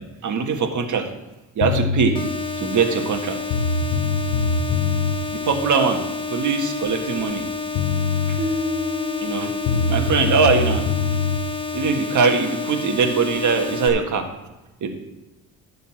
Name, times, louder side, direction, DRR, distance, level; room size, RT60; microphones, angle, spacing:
voice 1, 0.2-1.1 1.5-2.2 2.6-3.4 5.3-6.0 6.3-7.4 8.3-8.4 9.2-9.5 9.9-10.8 11.7-14.3 14.8-14.9, right 5 dB, 50° right, 4 dB, 1.6 m, -21 dB
sound 1, 1.6-2.1 3.1-3.2 3.5-5.2 7.4-7.5 7.7-8.4 9.6-11.4, left 5 dB, 85° left, 0.9 m, -22 dB
sound 2, 2.1-13.9, left 4 dB, 15° left, 1.3 m, -30 dB
sound 3, 8.4-11.5, left 3 dB, 20° right, 4.1 m, -31 dB
11.5 x 4.1 x 7.4 m, 1.1 s
supercardioid pair, 90°, 40 cm